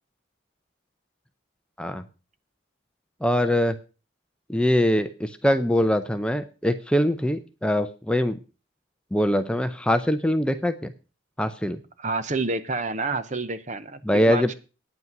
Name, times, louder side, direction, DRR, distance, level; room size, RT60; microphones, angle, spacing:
voice 1, 3.2-3.8 4.5-8.4 9.1-10.9 11.4-11.8 14.0-14.5, equal, 5° left, 9 dB, 0.5 m, -23 dB
voice 2, 12.0-14.5, right 3 dB, 35° right, 12 dB, 0.8 m, -29 dB
9.4 x 8.4 x 5.9 m, 0.33 s
head